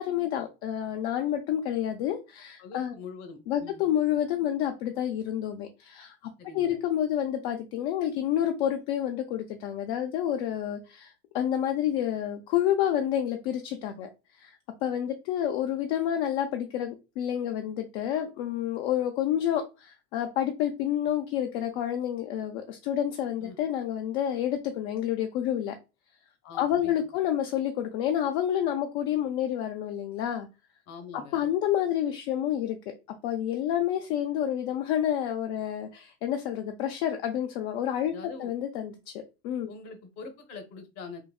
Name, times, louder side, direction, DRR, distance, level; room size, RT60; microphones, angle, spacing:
voice 1, 0.0-2.9 3.5-6.2 6.5-25.7 26.5-30.5 31.3-32.8 33.2-38.1 38.4-39.1 39.4-39.7, left 10 dB, 75° left, 5 dB, 0.5 m, -29 dB
voice 2, 2.6-3.8 6.4-6.8 23.4-23.6 26.4-27.0 30.9-31.5 38.1-38.5 39.7-41.2, left 4 dB, 55° left, 7 dB, 0.9 m, -43 dB
3.9 x 2.1 x 2.3 m, 0.28 s
supercardioid pair, 115°, 32 cm